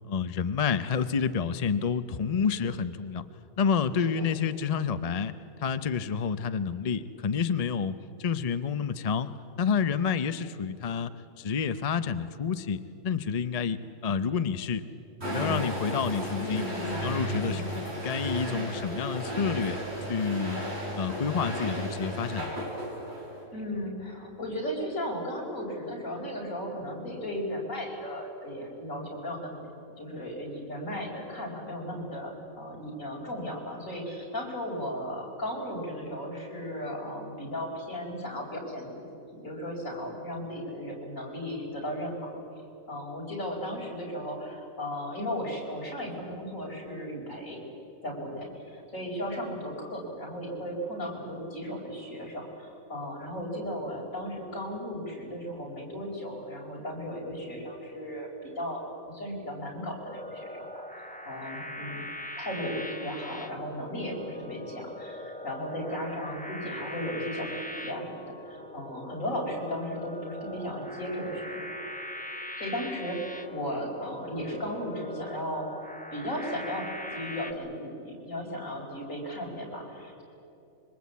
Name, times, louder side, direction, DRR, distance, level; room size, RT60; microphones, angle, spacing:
voice 1, 0.1-3.2 3.6-5.3 5.6-11.1 11.4-13.8 14.0-14.8 15.3-16.7 17.0-19.8 20.1-20.6 20.9-22.6, left 6 dB, 40° left, 11 dB, 0.5 m, -29 dB
voice 2, 4.0-4.7 16.4-17.1 17.4-17.7 23.5-29.7 30.0-42.4 42.9-47.6 48.0-62.0 62.4-71.6 72.6-75.7 76.1-80.2, equal, 65° left, -1 dB, 5.3 m, -36 dB
sound 1, 15.2-23.4, equal, 45° right, 5.7 m, -34 dB
sound 2, 60.0-77.5, left 1 dB, 5° left, 0.9 m, -41 dB
25.5 x 23.0 x 8.4 m, 2.8 s
omnidirectional pair, 1.5 m